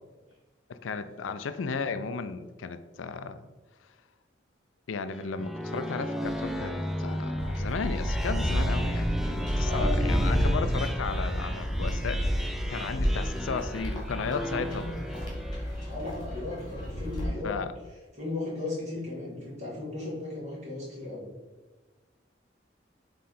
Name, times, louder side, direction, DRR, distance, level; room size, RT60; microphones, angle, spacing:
voice 1, 0.7-3.4 4.9-15.0 17.4-17.7, left 5 dB, 90° left, 11 dB, 0.4 m, -35 dB
sound 1, 5.1-16.0, equal, ahead, 0.3 m, -35 dB
sound 2, 7.4-17.3, equal, 25° left, 1.7 m, -30 dB
voice 2, 9.6-10.6 15.9-17.6 18.1-21.3, left 2 dB, 35° right, -4 dB, 2.0 m, -36 dB
7.4 x 3.2 x 4.2 m, 1.2 s
head